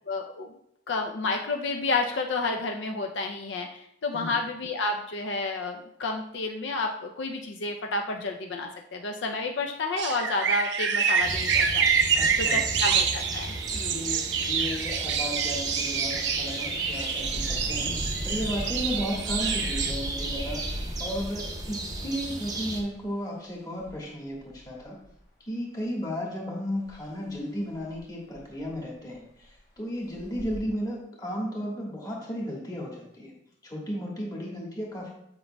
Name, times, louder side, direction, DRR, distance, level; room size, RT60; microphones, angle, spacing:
voice 1, 0.1-0.5 0.9-14.0, left 3 dB, 70° left, 3 dB, 0.5 m, -31 dB
sound 1, 10.0-19.9, right 6 dB, 65° right, 0.5 m, -27 dB
sound 2, 11.2-22.8, right 2 dB, 20° right, 0.7 m, -34 dB
voice 2, 12.1-12.6 13.9-25.0 25.5-33.3 33.6-35.1, equal, 20° left, -3 dB, 1.4 m, -34 dB
Engine, 15.2-15.3 15.8-15.9 17.1-22.9 23.8-23.9 24.4-25.1 26.9-27.0 27.4-27.5 27.9-28.0 28.4-28.9 29.4-29.5 30.1-30.6, equal, 40° left, 1.4 m, -37 dB
8.1 x 5.3 x 2.2 m, 0.76 s
head